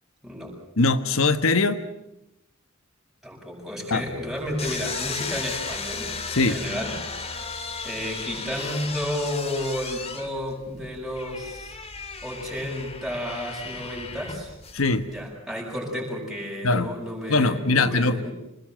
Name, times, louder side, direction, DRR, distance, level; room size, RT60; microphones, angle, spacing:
voice 1, 0.2-0.5 3.2-7.5 7.8-11.8 12.2-14.5 15.1-18.3, equal, ahead, -1 dB, 7.7 m, -32 dB
voice 2, 0.8-1.8 3.9-4.0 6.3-6.6 14.7-15.1 16.6-16.9 17.3-18.2, left 3 dB, 80° left, 10 dB, 1.2 m, -21 dB
sound 1, 4.0-15.3, left 4 dB, 30° left, 2.7 m, -35 dB
27.0 x 21.0 x 7.6 m, 0.86 s
head